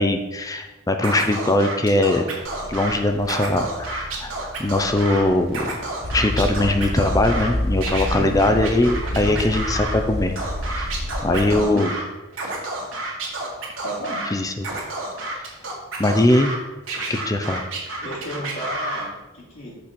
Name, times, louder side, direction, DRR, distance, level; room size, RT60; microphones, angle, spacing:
voice 1, 0.0-2.3 2.7-5.7 6.1-10.4 10.7-10.9 11.2-11.9 14.3-14.6 16.0-16.5 17.1-17.6, left 1 dB, 15° left, 6 dB, 0.5 m, -21 dB
Scratching (performance technique), 1.0-2.9 3.2-5.2 5.5-7.5 7.8-10.0 10.4-12.0 12.3-14.3 14.6-16.6 16.9-19.0, right 2 dB, 65° right, 1.9 m, -30 dB
sound 1, 2.4-11.3, equal, 50° right, 0.9 m, -41 dB
sound 2, 6.0-11.6, left 1 dB, 50° left, 0.8 m, -28 dB
voice 2, 11.2-11.8 13.8-14.2 18.0-19.7, equal, 65° left, -5 dB, 2.5 m, -33 dB
6.1 x 4.2 x 6.1 m, 1.1 s
head